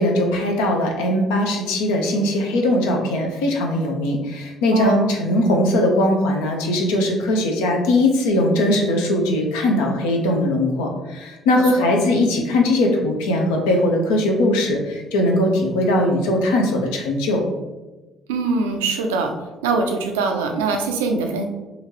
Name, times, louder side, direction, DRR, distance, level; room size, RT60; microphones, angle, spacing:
voice 1, 0.0-17.4, left 1 dB, 80° left, 2 dB, 0.5 m, -20 dB
voice 2, 4.7-5.1 11.6-11.9 18.3-19.3 19.6-21.5, right 4 dB, 90° right, 4 dB, 0.3 m, -23 dB
2.9 x 2.5 x 2.9 m, 1.1 s
hypercardioid pair, 55°, 0 cm